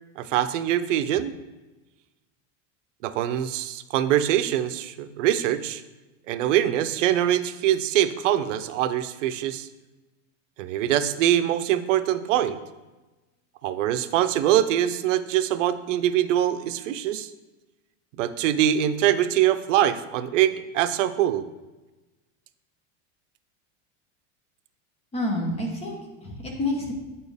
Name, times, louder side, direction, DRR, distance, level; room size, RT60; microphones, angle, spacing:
voice 1, 0.2-1.3 3.0-5.8 6.3-9.7 10.6-12.6 13.6-17.3 18.2-21.5, right 11 dB, 90° right, 12 dB, 0.6 m, -23 dB
voice 2, 25.1-26.9, left 1 dB, 15° left, 0 dB, 1.1 m, -28 dB
8.6 x 4.3 x 3.4 m, 1.1 s
supercardioid pair, 155°, 36 cm